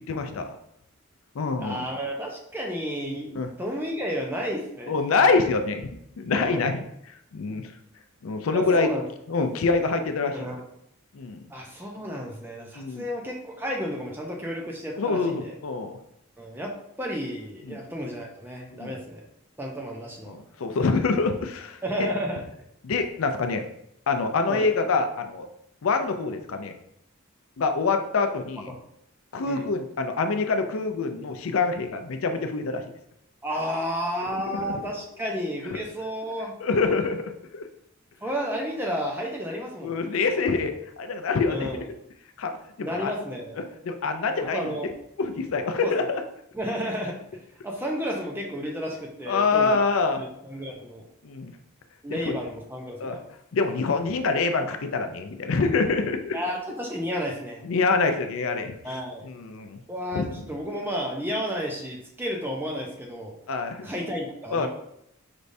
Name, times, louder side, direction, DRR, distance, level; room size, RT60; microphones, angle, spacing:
voice 1, 0.1-0.6 1.4-1.9 3.4-3.5 4.9-5.9 6.2-6.8 7.3-7.7 8.2-8.9 9.3-10.3 11.1-11.4 12.8-13.1 15.0-16.0 17.7-17.8 18.7-18.9 20.3-21.8 22.8-23.6 24.1-25.5 25.8-26.7 27.6-28.7 29.3-32.8 34.5-34.7 35.7-35.8 36.6-37.7 39.8-41.7 42.4-43.1 43.6-44.7 45.2-46.0 49.3-50.2 51.2-51.5 52.1-52.4 53.0-53.2 53.5-56.4 57.6-58.7 59.2-59.8 60.1-60.3 63.5-63.9 64.5-64.7, left 4 dB, 80° left, 7 dB, 0.5 m, -25 dB
voice 2, 1.6-5.0 6.3-6.7 8.5-9.0 10.3-10.6 11.5-15.5 16.4-16.7 17.0-19.3 19.6-20.3 21.8-22.4 24.5-24.7 29.4-29.7 33.4-36.5 38.2-40.0 41.5-41.8 42.8-43.6 44.4-45.0 45.8-46.0 46.5-47.2 47.6-49.8 50.2-51.0 52.0-53.2 56.3-57.7 58.8-59.3 59.9-63.3 63.8-64.7, equal, 10° right, 0 dB, 0.5 m, -32 dB
5.1 x 3.3 x 2.6 m, 0.76 s
head